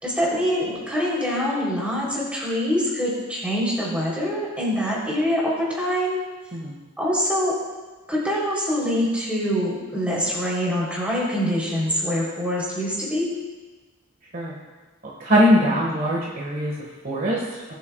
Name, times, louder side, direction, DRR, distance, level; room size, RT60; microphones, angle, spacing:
voice 1, 0.0-6.2 7.0-7.5 8.1-13.3, equal, 5° right, -6 dB, 3.3 m, -24 dB
voice 2, 15.2-16.7 17.0-17.4, equal, 45° right, -4 dB, 1.5 m, -21 dB
19.0 x 8.4 x 2.3 m, 1.3 s
head